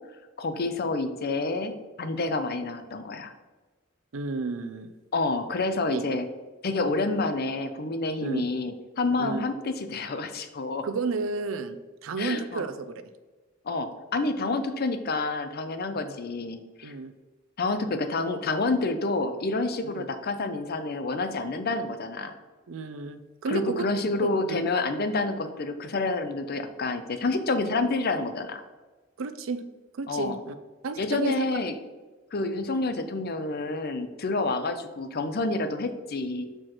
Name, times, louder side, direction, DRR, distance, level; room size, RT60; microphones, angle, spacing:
voice 1, 0.4-3.3 5.1-6.3 6.6-10.9 12.2-12.6 13.7-16.9 17.6-22.3 23.5-28.6 30.1-30.4 31.0-31.8 32.3-36.4, left 3 dB, 50° left, 9 dB, 0.6 m, -28 dB
voice 2, 4.1-4.9 5.9-6.0 8.2-8.5 9.2-9.4 10.8-13.0 15.9-16.1 16.8-17.1 19.8-20.1 22.7-23.9 24.2-24.6 29.2-29.6 29.9-30.5 30.8-31.4, right 4 dB, 75° right, 10 dB, 0.5 m, -32 dB
6.3 x 4.5 x 4.3 m, 1.2 s
head